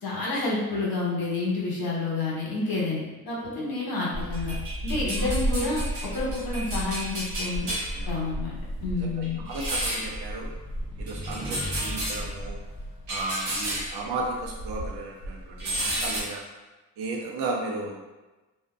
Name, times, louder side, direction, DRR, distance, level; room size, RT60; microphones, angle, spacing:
voice 1, 0.0-4.6 4.8-7.7 8.1-8.5 8.8-9.4, left 3 dB, 50° left, -5 dB, 1.0 m, -29 dB
sound 1, 4.1-15.0 15.2-16.2, equal, 85° right, 1.0 m, -31 dB
voice 2, 7.7-8.3 8.9-10.5 11.0-12.6 13.1-16.4 17.0-18.1, right 3 dB, 60° right, 0 dB, 0.7 m, -35 dB
sound 2, 10.2-13.5, equal, 10° right, 0.4 m, -39 dB
2.7 x 2.1 x 2.3 m, 1.1 s
hypercardioid pair, 45°, 45 cm